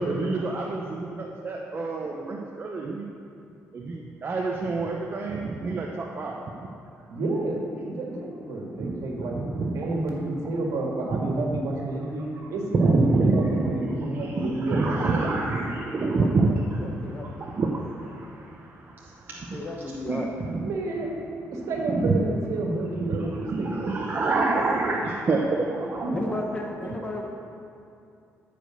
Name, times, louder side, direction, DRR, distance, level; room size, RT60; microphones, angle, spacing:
voice 1, 0.0-3.1 3.7-6.6 8.1-8.2 8.8-9.9 11.1-11.7 12.7-13.7 14.1-19.6 20.1-20.2 20.5-20.7 21.9-22.2 23.0-26.1 26.8-26.9, right 3 dB, 40° right, -1 dB, 0.8 m, -27 dB
voice 2, 7.1-9.4 9.7-15.3 20.6-21.1 21.5-23.9 26.0-26.1, right 2 dB, 80° right, -1 dB, 2.0 m, -30 dB
voice 3, 16.0-16.3 16.7-17.3 19.5-20.3 26.1-27.4, left 2 dB, 20° left, 1 dB, 1.2 m, -34 dB
13.5 x 5.1 x 6.5 m, 2.6 s
cardioid pair, 120°, 5 cm